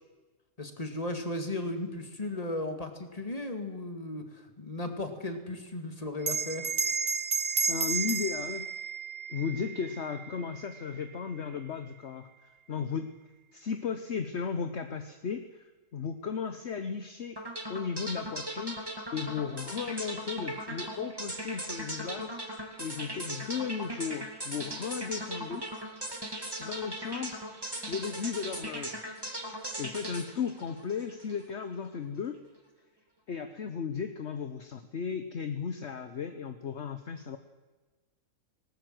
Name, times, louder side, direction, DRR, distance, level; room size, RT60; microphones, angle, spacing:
voice 1, 0.6-6.7, left 2 dB, 25° left, 6 dB, 2.4 m, -36 dB
Bell, 6.2-11.1, right 5 dB, 35° right, 0.9 m, -32 dB
voice 2, 7.7-8.7 9.3-13.1 13.5-15.6 15.9-17.4 17.7-18.8 19.1-22.3 22.8-25.7 26.6-27.4 27.9-29.0 29.8-32.4 33.3-37.4, left 6 dB, 55° left, 8 dB, 1.2 m, -35 dB
sound 1, 17.4-31.4, right 1 dB, 15° right, 2.6 m, -39 dB
19.0 x 19.0 x 7.8 m, 1.3 s
omnidirectional pair, 1.4 m